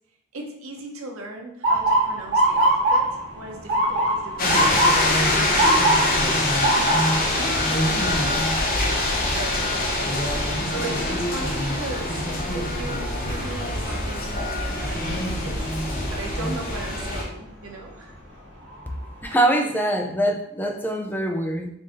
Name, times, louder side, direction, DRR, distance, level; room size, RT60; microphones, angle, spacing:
voice 1, 0.3-4.8 5.2-6.0 6.9-7.6 9.1-10.0 10.7-12.2 12.5-15.7 16.1-18.1, right 3 dB, 90° right, 1 dB, 0.8 m, -37 dB
Motor vehicle (road) / Siren, 1.6-13.5 14.0-14.4 15.2-15.5 17.4-17.6 18.1-18.2 18.6-19.3, right 1 dB, 60° right, 1.3 m, -25 dB
sound 1, 4.4-17.2, left 1 dB, 45° left, 0.8 m, -24 dB
voice 2, 19.2-21.7, right 1 dB, 10° left, 3 dB, 0.4 m, -23 dB
3.7 x 2.6 x 3.8 m, 0.77 s
head